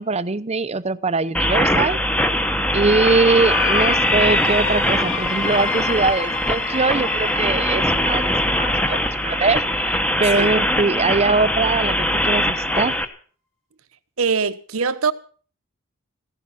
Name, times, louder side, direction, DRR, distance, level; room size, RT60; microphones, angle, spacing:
voice 1, 0.0-2.0 2.7-9.6 10.2-13.0, right 3 dB, 30° right, 0.8 m, -21 dB
sound 1, 1.3-13.0, left 1 dB, 5° left, 1.3 m, -21 dB
sound 2, 3.0-10.6, left 4 dB, 65° left, 2.3 m, -31 dB
voice 2, 14.2-15.1, right 5 dB, 75° right, 1.1 m, -22 dB
16.0 x 15.0 x 5.9 m
head